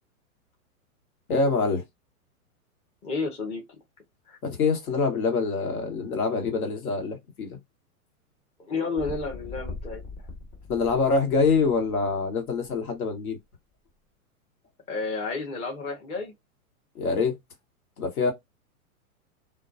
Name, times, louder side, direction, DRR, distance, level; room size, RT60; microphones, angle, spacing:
voice 1, 1.3-1.8 4.4-7.6 10.7-13.4 16.9-17.3 18.0-18.3, left 4 dB, 75° left, 1.2 m, -25 dB
voice 2, 3.0-3.6 4.3-4.4 8.6-10.0 14.9-16.3, left 4 dB, 15° left, 0.5 m, -31 dB
sound 1, 9.0-12.7 13.3-13.4, left 3 dB, 40° left, 1.1 m, -41 dB
2.2 x 2.2 x 2.5 m
hypercardioid pair, 115°, 44 cm